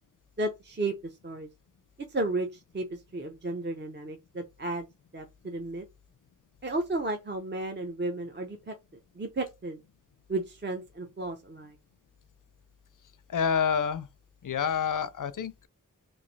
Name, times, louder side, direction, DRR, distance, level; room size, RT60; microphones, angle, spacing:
voice 1, 0.4-1.5 2.1-4.8 5.1-5.8 6.6-8.7 9.2-9.8 10.3-11.8, right 2 dB, 35° right, 0.6 m, -33 dB
voice 2, 13.3-14.1 14.4-15.7, left 7 dB, 70° left, 0.5 m, -28 dB
3.1 x 2.5 x 3.9 m
wide cardioid pair, 60°, 33 cm